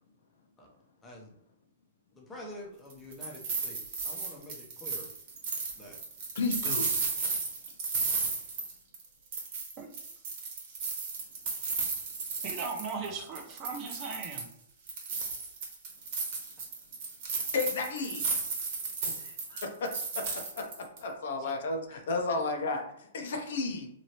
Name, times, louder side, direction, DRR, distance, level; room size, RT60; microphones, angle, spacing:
voice 1, 1.0-1.3 2.1-5.1 5.8-6.0 13.0-13.3 19.0-19.2, left 1 dB, 15° left, -2 dB, 0.8 m, -47 dB
sound 1, 2.9-9.0 9.3-13.1 13.3-14.5 14.9-21.0, right 4 dB, 50° right, 1.1 m, -34 dB
voice 2, 6.3-6.9 17.5-18.3 19.2-20.2 21.0-23.9, left 3 dB, 70° left, 4 dB, 0.7 m, -33 dB
voice 3, 12.4-14.5 21.4-21.5, right 4 dB, 30° right, 4 dB, 0.6 m, -38 dB
2.9 x 2.7 x 2.9 m, 0.73 s
hypercardioid pair, 140°, 0 cm